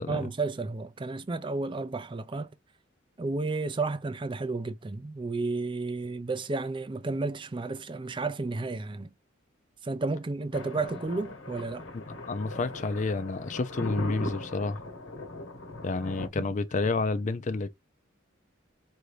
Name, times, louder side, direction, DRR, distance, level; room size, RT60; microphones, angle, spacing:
voice 1, 0.1-2.5 3.2-9.1 9.8-11.9 16.4-16.5, right 3 dB, 25° right, 0.4 m, -32 dB
Thunder, 10.5-16.3, left 2 dB, 85° left, 1.2 m, -39 dB
voice 2, 11.9-14.8 15.8-17.7, left 3 dB, 40° left, 0.4 m, -30 dB
4.7 x 2.7 x 3.1 m
head